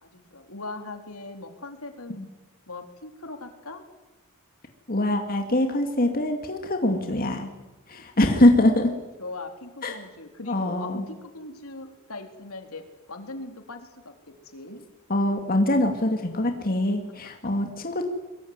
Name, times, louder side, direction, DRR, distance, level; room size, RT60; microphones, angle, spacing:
voice 1, 0.0-2.2 2.7-3.8 7.9-8.0 9.2-12.8 13.1-14.1 14.4-14.8, left 2 dB, 80° left, 5 dB, 3.8 m, -40 dB
voice 2, 4.9-7.5 7.9-8.9 9.8-10.0 10.5-11.0 15.1-18.0, left 1 dB, 45° left, 4 dB, 2.5 m, -23 dB
23.0 x 23.0 x 9.7 m, 1.1 s
head